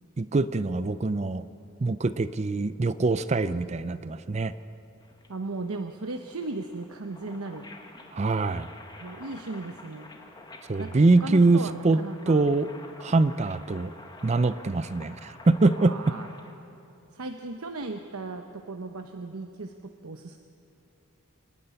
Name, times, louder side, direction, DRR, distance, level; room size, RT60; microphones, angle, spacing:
voice 1, 0.2-1.4 1.8-4.5 8.1-8.7 10.7-12.0 12.3-12.7 13.0-13.9 14.2-16.1, right 3 dB, 30° right, 14 dB, 0.4 m, -23 dB
sound 1, 5.0-16.5, left 2 dB, 20° left, 1.6 m, -49 dB
voice 2, 5.3-7.7 9.0-10.1 10.8-12.5 15.8-16.3 17.1-20.4, right 3 dB, 80° right, 6 dB, 0.9 m, -36 dB
27.5 x 9.9 x 9.8 m, 2.8 s
head